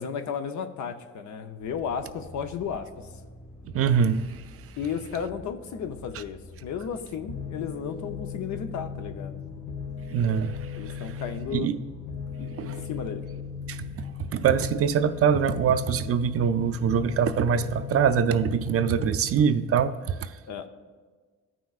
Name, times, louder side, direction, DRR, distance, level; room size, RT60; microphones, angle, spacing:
voice 1, 0.0-3.1 4.8-9.4 10.7-11.7 12.4-13.2 20.5-20.7, left 7 dB, 70° left, 0.7 m, -34 dB
sound 1, 1.6-19.3, left 1 dB, 35° left, 1.4 m, -47 dB
voice 2, 3.7-4.4 10.1-10.6 10.9-11.0 11.5-11.8 12.6-12.9 13.7-14.0 14.3-20.3, right 7 dB, 50° right, 0.4 m, -24 dB
sound 2, 7.3-19.3, left 6 dB, 85° left, 1.1 m, -38 dB
14.0 x 5.9 x 2.4 m
cardioid pair, 90°, 30 cm